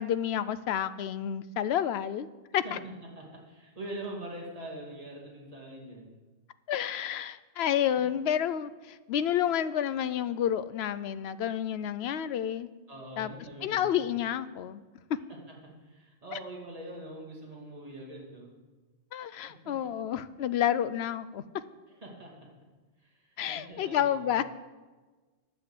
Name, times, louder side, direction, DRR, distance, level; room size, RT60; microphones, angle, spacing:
voice 1, 0.0-2.3 2.5-2.8 6.7-12.7 13.2-13.3 13.6-14.8 15.1-15.2 16.3-16.4 19.1-21.4 23.4-24.4, left 10 dB, 70° left, 15 dB, 0.8 m, -30 dB
voice 2, 2.6-6.1 12.9-13.9 15.5-15.6 15.8-18.5 19.6-19.7 21.9-22.3 23.0-24.4, right 1 dB, 35° right, -2 dB, 2.4 m, -43 dB
11.0 x 6.4 x 7.6 m, 1.3 s
omnidirectional pair, 1.1 m